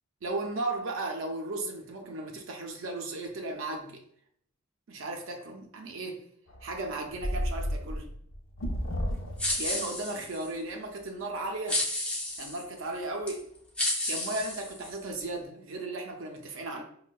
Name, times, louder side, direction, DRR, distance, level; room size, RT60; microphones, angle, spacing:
voice 1, 0.2-4.0 4.9-6.2 6.6-8.1 9.6-11.8 12.4-13.5 14.1-16.8, right 2 dB, 70° right, 0.5 m, -35 dB
sound 1, 6.5-9.9, equal, 65° left, 0.5 m, -33 dB
sound 2, 9.4-10.5 11.7-12.6 13.3-13.4 13.8-15.2, left 1 dB, 5° left, 0.4 m, -31 dB
5.1 x 2.1 x 2.3 m
head